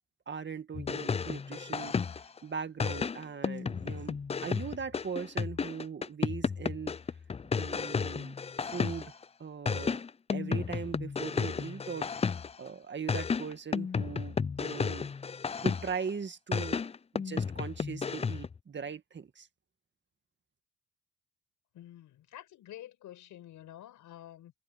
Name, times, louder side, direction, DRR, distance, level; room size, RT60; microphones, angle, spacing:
voice 1, 0.3-2.0 2.4-6.9 7.6-8.4 8.6-9.1 9.4-10.0 10.3-15.1 15.6-16.8 17.1-19.5, right 6 dB, 35° right, 2.0 m, -40 dB
sound 1, 0.7-2.4 2.8-9.2 9.7-12.7 13.1-16.1 16.5-18.6, left 5 dB, 20° left, 0.5 m, -33 dB
voice 2, 21.7-24.5, left 13 dB, 80° left, 5.9 m, -49 dB
cardioid pair, 90°, 30 cm